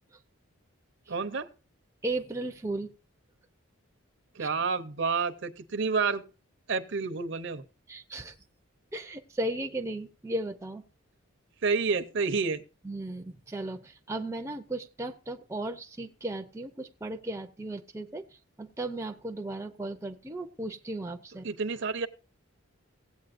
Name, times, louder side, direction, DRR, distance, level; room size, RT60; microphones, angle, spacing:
voice 1, 1.1-1.5 4.4-6.2 6.7-7.6 11.6-12.6 21.4-22.1, right 4 dB, 55° right, 10 dB, 0.7 m, -29 dB
voice 2, 2.0-2.9 4.4-4.5 7.9-8.4 8.9-10.8 12.8-21.5, right 2 dB, 15° right, 4 dB, 0.5 m, -36 dB
17.5 x 8.3 x 2.5 m, 0.34 s
head